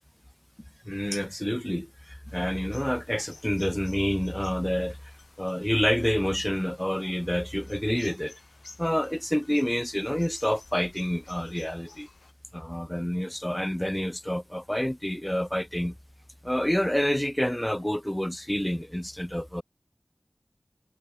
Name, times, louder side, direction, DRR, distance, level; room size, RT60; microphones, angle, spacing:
voice 1, 0.9-5.0 5.4-8.3 8.8-12.1 12.5-15.9 16.4-19.6, equal, 10° left, 0.5 m, -28 dB
sound 1, 2.3-12.3, left 3 dB, 90° left, 2.9 m, -54 dB
wide cardioid pair, 60°, 0 cm